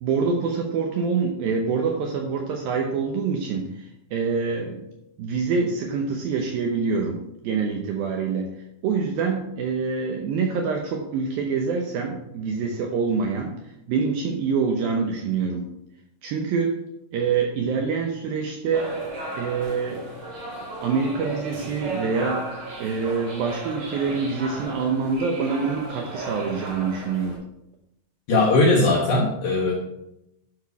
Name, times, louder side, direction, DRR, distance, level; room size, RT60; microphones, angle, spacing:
voice 1, 0.0-4.8 5.2-8.5 8.8-13.5 13.9-15.7 16.2-16.8 17.1-18.9 19.4-20.1 20.8-22.5 22.8-27.4, right 5 dB, 80° right, 2 dB, 2.1 m, -26 dB
sound 1, 18.7-27.4, right 1 dB, 45° right, 2.0 m, -35 dB
voice 2, 28.3-29.7, left 2 dB, 65° left, -3 dB, 1.9 m, -19 dB
12.0 x 4.9 x 4.7 m, 0.83 s
omnidirectional pair, 5.2 m